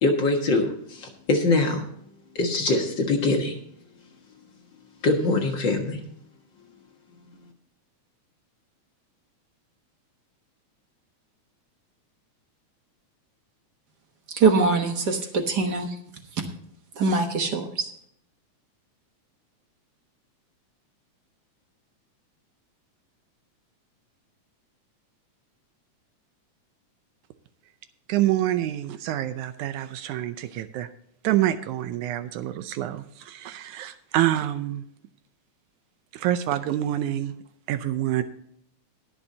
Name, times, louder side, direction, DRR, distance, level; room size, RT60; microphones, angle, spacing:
voice 1, 0.0-1.9 2.4-3.6 5.0-6.0, left 2 dB, 45° left, 1.8 m, -23 dB
voice 2, 14.3-15.9 17.0-17.9, right 4 dB, 60° right, 1.1 m, -22 dB
voice 3, 28.1-30.9 31.2-34.8 36.1-37.4 37.7-38.2, right 13 dB, 80° right, 2.1 m, -26 dB
21.0 x 7.1 x 2.8 m
omnidirectional pair, 3.5 m